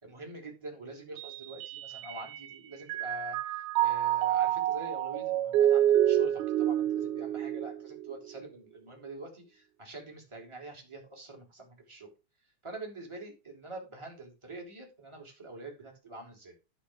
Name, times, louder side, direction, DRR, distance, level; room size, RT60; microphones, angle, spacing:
voice 1, 0.0-12.1 12.6-16.5, right 2 dB, 10° right, 0 dB, 3.2 m, -45 dB
Mallet percussion, 1.2-2.5 2.9-8.3, right 11 dB, 80° right, 2.1 m, -28 dB
13.0 x 5.0 x 5.1 m, 0.29 s
omnidirectional pair, 3.5 m